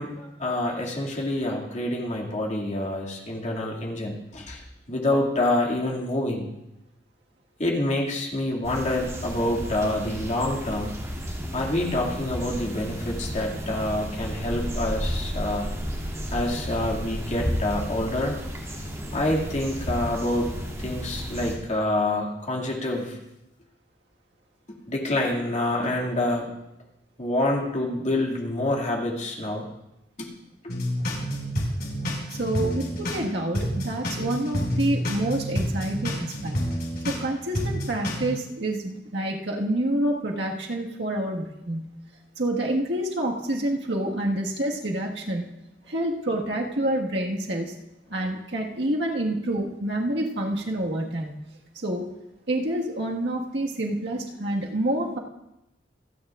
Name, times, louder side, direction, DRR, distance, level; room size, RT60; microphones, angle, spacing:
voice 1, 0.0-4.6 4.9-6.5 7.6-11.0 11.5-15.7 16.3-18.3 19.1-20.5 20.8-23.2 24.9-26.5 27.2-29.6 30.2-30.3, left 1 dB, 40° left, -2 dB, 2.3 m, -27 dB
sound 1, 8.6-21.5, equal, 20° right, 2.6 m, -32 dB
sound 2, 30.7-33.2 33.5-37.2 37.5-38.2, equal, 65° left, 5.8 m, -28 dB
voice 2, 32.3-36.6 37.0-41.9 42.4-45.5 45.9-47.8 48.1-51.3 51.8-52.1 52.5-55.2, right 1 dB, 80° right, -1 dB, 1.7 m, -28 dB
27.5 x 9.3 x 2.5 m, 0.90 s
head